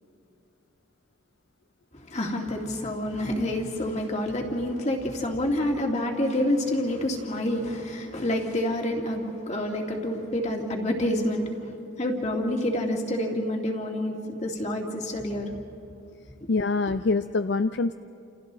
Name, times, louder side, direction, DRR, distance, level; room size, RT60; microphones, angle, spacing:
voice 1, 1.9-11.7 12.0-15.5 16.4-16.5, left 1 dB, 35° left, 1 dB, 2.4 m, -28 dB
voice 2, 16.5-17.9, left 3 dB, 60° left, 10 dB, 0.4 m, -25 dB
29.0 x 28.5 x 4.1 m, 2.6 s
head